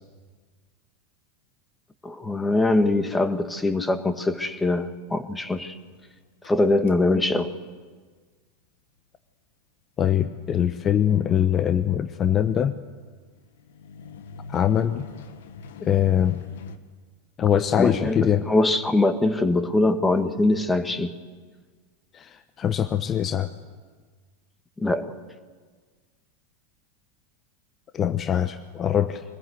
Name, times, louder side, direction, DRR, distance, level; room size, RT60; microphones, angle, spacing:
voice 1, 2.0-5.8 6.4-7.6 17.8-21.1 24.8-25.1, left 2 dB, 10° left, 10 dB, 1.7 m, -23 dB
sound 1, 5.8-7.3 13.3-16.8, left 5 dB, 65° left, 1.5 m, -43 dB
voice 2, 10.0-12.7 14.5-15.1 15.8-16.4 17.4-18.4 22.1-23.5 27.9-29.2, left 9 dB, 30° left, 11 dB, 1.0 m, -22 dB
24.5 x 19.5 x 8.1 m, 1.5 s
figure-of-eight pair, 85°, 0 cm